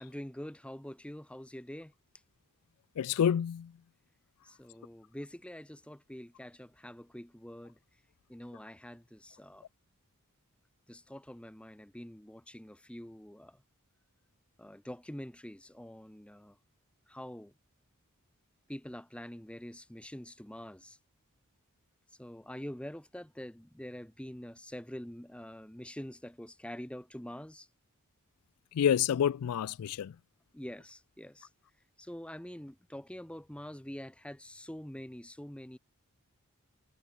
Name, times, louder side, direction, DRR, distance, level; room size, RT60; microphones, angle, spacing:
voice 1, 0.0-1.9 4.4-7.8 8.3-9.6 10.9-13.6 14.6-16.6 17.1-17.5 18.7-21.0 22.2-27.7 30.5-31.5 32.0-35.8, equal, 5° left, 1.0 m, -45 dB
voice 2, 3.0-3.7 28.7-30.1, left 9 dB, 80° left, 0.3 m, -28 dB
head